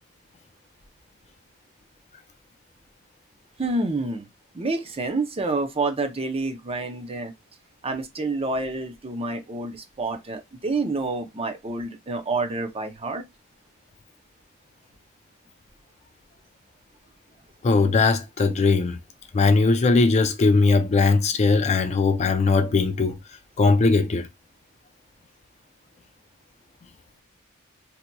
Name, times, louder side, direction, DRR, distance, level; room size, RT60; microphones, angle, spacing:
voice 1, 3.6-4.3 4.5-7.3 7.8-13.3, right 3 dB, 25° right, 0.6 m, -28 dB
voice 2, 17.6-19.0 19.3-23.2 23.6-24.3, left 3 dB, 30° left, 0.4 m, -19 dB
3.9 x 2.8 x 2.2 m
head